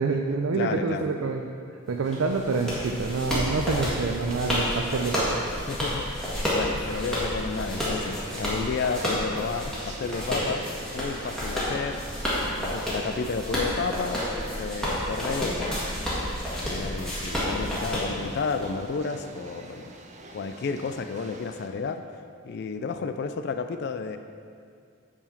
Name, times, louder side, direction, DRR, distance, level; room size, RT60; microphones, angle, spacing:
voice 1, 0.0-1.5 1.9-5.6, right 4 dB, 80° right, 3 dB, 0.5 m, -27 dB
voice 2, 0.5-1.1 5.7-10.6 10.9-12.0 12.4-14.2 14.6-16.1 16.5-19.9 20.3-24.2, left 5 dB, 50° left, 8 dB, 0.3 m, -32 dB
sound 1, 2.0-21.7, right 2 dB, 35° right, 0.6 m, -45 dB
sound 2, 2.1-18.7, equal, 5° left, 1.7 m, -30 dB
8.8 x 4.7 x 5.8 m, 2.3 s
head